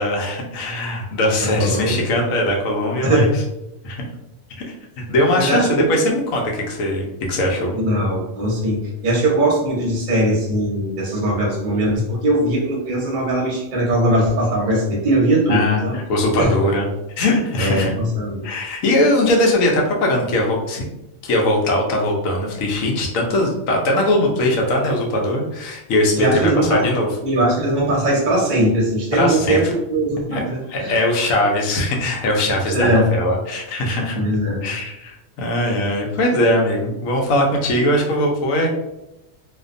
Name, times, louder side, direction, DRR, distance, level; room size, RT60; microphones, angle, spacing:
voice 1, 0.0-3.3 3.8-4.0 4.5-7.7 15.5-16.9 17.2-17.9 18.4-20.8 21.2-27.1 29.1-29.6 30.3-30.4 30.7-34.2 34.6-38.7, left 1 dB, 85° left, 0 dB, 1.0 m, -20 dB
voice 2, 1.4-2.0 3.0-3.3 5.3-5.9 7.8-16.0 16.4-16.5 17.6-18.4 26.2-26.8 27.2-30.9 32.7-33.1 34.1-34.6, right 1 dB, 45° right, -3 dB, 0.8 m, -20 dB
2.5 x 2.2 x 2.5 m, 0.90 s
omnidirectional pair, 1.4 m